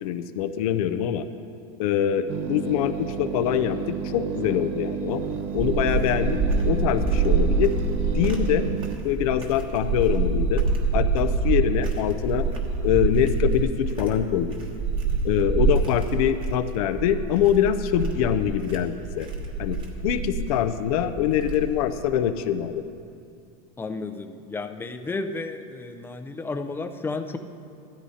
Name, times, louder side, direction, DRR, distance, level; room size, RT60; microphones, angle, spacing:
voice 1, 0.0-1.2 1.8-5.2 5.5-6.4 6.6-7.8 8.1-8.6 9.0-10.6 10.9-12.5 12.8-14.6 15.2-19.3 19.6-19.8 20.0-22.8, left 10 dB, 80° left, 10 dB, 0.6 m, -24 dB
sound 1, 2.3-9.0, right 7 dB, 70° right, 0.7 m, -31 dB
sound 2, 5.1-21.9, right 4 dB, 30° right, 1.4 m, -26 dB
voice 2, 23.8-27.4, left 3 dB, 10° left, 7 dB, 0.5 m, -32 dB
15.0 x 13.0 x 2.8 m, 2.4 s
supercardioid pair, 135°, 19 cm